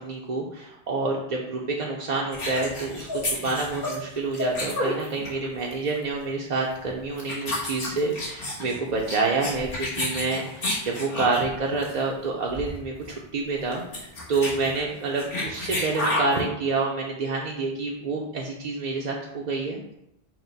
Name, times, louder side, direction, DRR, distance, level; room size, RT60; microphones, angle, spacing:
voice 1, 0.0-19.9, right 3 dB, 50° right, -2 dB, 0.6 m, -28 dB
sound 1, 2.3-5.5 5.7-6.0 6.7-6.9 7.2-11.5 11.8-12.0 12.2-12.3 12.5-12.8 13.1-13.2 13.6-16.4, left 1 dB, 65° left, 1.4 m, -30 dB
6.0 x 2.1 x 3.9 m, 0.80 s
omnidirectional pair, 1.0 m